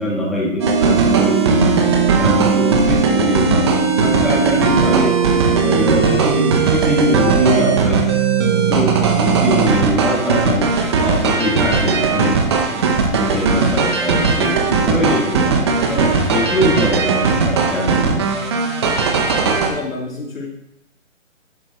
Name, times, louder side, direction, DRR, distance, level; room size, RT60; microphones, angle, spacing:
voice 1, 0.0-1.7 2.2-3.6 4.0-5.1 5.6-8.0 8.7-10.6 11.0-12.4 12.7-12.8 13.2-18.2, equal, ahead, -7 dB, 1.6 m, -22 dB
sound 1, 0.6-19.7, right 5 dB, 20° right, 0.7 m, -17 dB
voice 2, 19.3-20.5, left 3 dB, 80° left, -2 dB, 3.2 m, -29 dB
11.0 x 7.4 x 3.0 m, 0.82 s
hypercardioid pair, 150°, 40 cm